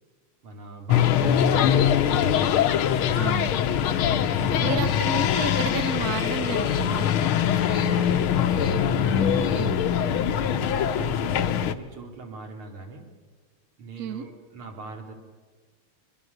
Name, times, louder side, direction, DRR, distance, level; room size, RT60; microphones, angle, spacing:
voice 1, 0.4-2.6 3.0-5.0 7.7-9.8 10.2-13.1 13.8-15.1, right 3 dB, 75° right, 3 dB, 3.4 m, -41 dB
sound 1, 0.9-11.7, left 9 dB, 75° left, 1.6 m, -23 dB
voice 2, 3.2-3.5 4.6-7.1 9.6-9.8 14.0-14.3, right 6 dB, 55° right, 11 dB, 1.1 m, -31 dB
Human voice, 4.5-7.2 7.6-10.1, left 6 dB, 50° left, 0.9 m, -39 dB
24.0 x 21.5 x 6.6 m, 1.4 s
omnidirectional pair, 2.4 m